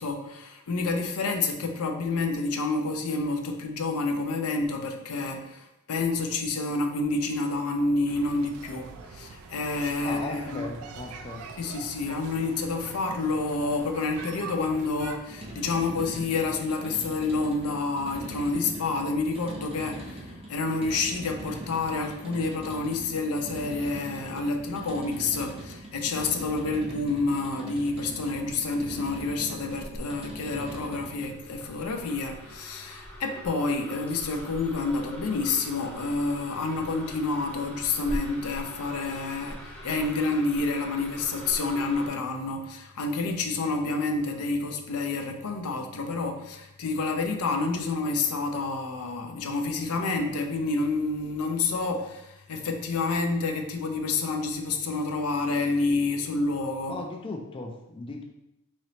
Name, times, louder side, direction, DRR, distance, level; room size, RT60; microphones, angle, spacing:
voice 1, 0.0-10.7 11.6-57.0, left 3 dB, 80° left, 4 dB, 0.5 m, -29 dB
sound 1, 8.1-15.2, right 5 dB, 70° right, 0.4 m, -43 dB
voice 2, 10.0-11.4 56.9-58.2, left 2 dB, 25° left, 2 dB, 0.3 m, -37 dB
sound 2, 15.2-31.4, right 1 dB, 25° right, 0.6 m, -42 dB
sound 3, 28.6-42.1, equal, 5° left, 0.8 m, -43 dB
3.9 x 3.2 x 2.8 m, 0.87 s
head